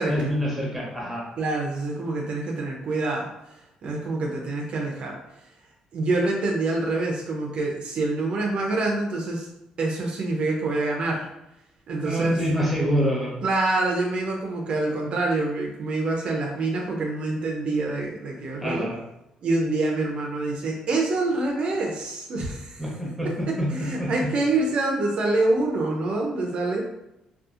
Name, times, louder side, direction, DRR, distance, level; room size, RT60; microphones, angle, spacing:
voice 1, 0.1-1.2 12.0-13.3 18.6-19.0 22.8-24.1, equal, ahead, -4 dB, 0.9 m, -26 dB
voice 2, 1.4-3.3 3.8-5.1 5.9-9.5 9.8-11.3 11.9-12.3 13.4-18.9 19.4-22.8 23.5-26.9, right 2 dB, 55° right, 0 dB, 0.4 m, -26 dB
2.7 x 2.3 x 2.4 m, 0.87 s
cardioid pair, 105°, 2 cm